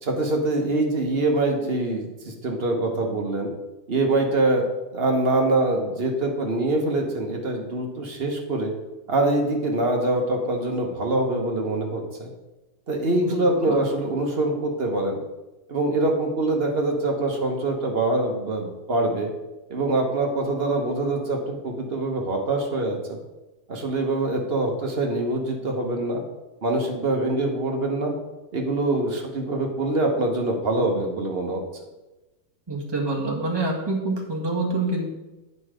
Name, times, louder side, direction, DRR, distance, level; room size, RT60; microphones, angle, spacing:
voice 1, 0.0-3.5 3.9-4.6 4.9-8.7 9.1-12.3 12.9-15.2 15.7-19.3 19.7-23.2 23.7-26.2 26.6-28.1 28.5-31.6, right 2 dB, 40° right, 2 dB, 1.2 m, -24 dB
voice 2, 13.1-13.8 32.7-35.1, right 2 dB, 15° right, -1 dB, 1.3 m, -27 dB
8.4 x 5.5 x 4.9 m, 1.1 s
omnidirectional pair, 1.8 m